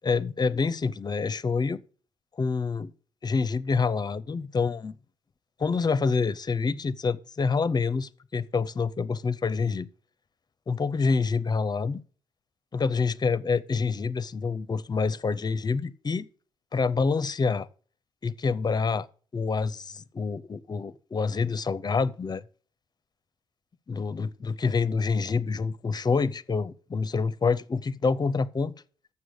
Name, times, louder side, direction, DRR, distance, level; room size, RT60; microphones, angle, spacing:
voice 1, 0.0-1.8 2.4-2.9 3.2-4.9 5.6-9.9 10.7-12.0 12.7-16.3 16.7-17.7 18.2-19.1 19.3-22.4 23.9-28.7, left 4 dB, 35° left, 0.6 m, -27 dB
7.3 x 6.2 x 7.9 m
hypercardioid pair, 50°, 13 cm